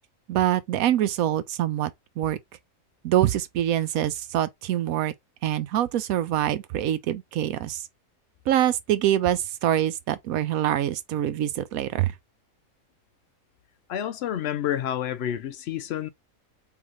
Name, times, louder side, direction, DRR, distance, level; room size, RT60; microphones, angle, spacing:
voice 1, 0.3-1.9 2.2-2.4 3.0-5.1 5.4-7.8 8.5-12.1, right 12 dB, 90° right, 1.1 m, -25 dB
voice 2, 13.9-16.1, left 10 dB, 65° left, 0.7 m, -29 dB
3.8 x 3.6 x 3.1 m
omnidirectional pair, 1.4 m